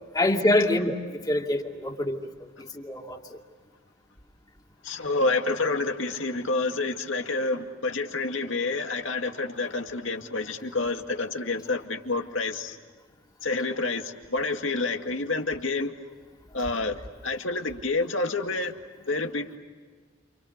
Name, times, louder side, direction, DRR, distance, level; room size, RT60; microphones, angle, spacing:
voice 1, 0.1-2.3 2.6-3.4, left 1 dB, 20° left, 1 dB, 2.6 m, -26 dB
voice 2, 4.8-12.8 13.4-15.9 16.5-18.7 19.1-19.5, left 3 dB, 70° left, 4 dB, 2.3 m, -28 dB
29.5 x 29.0 x 6.7 m, 1.5 s
head